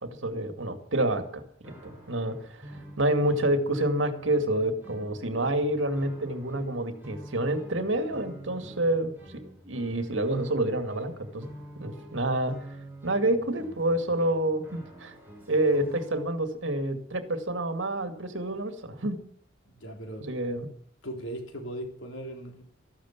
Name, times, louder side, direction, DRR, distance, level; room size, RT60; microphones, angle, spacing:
voice 1, 0.0-2.4 2.7-11.5 11.8-12.6 13.0-15.1 15.5-19.2 20.2-20.7, right 1 dB, 85° right, 2.3 m, -28 dB
sound 1, 1.6-16.2, right 1 dB, 10° right, 7.6 m, -47 dB
voice 2, 19.7-20.3 21.0-22.6, right 1 dB, 90° left, 3.8 m, -38 dB
14.5 x 12.0 x 7.2 m
head